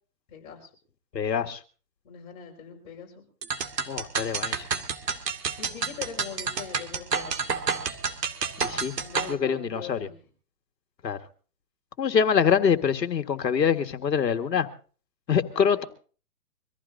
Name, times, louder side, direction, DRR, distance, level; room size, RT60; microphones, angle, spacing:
voice 1, 0.3-0.7 2.0-3.2 3.8-3.9 5.6-7.4 9.0-10.1 15.5-15.9, left 7 dB, 25° left, 5.3 m, -41 dB
voice 2, 1.1-1.6 3.9-4.7 8.6-8.9 9.3-10.1 11.0-11.2 12.0-14.7 15.3-15.8, left 7 dB, 85° left, 1.9 m, -24 dB
sound 1, 3.4-9.3, right 5 dB, 80° right, 2.2 m, -29 dB
25.0 x 15.0 x 2.7 m
hypercardioid pair, 165°, 48 cm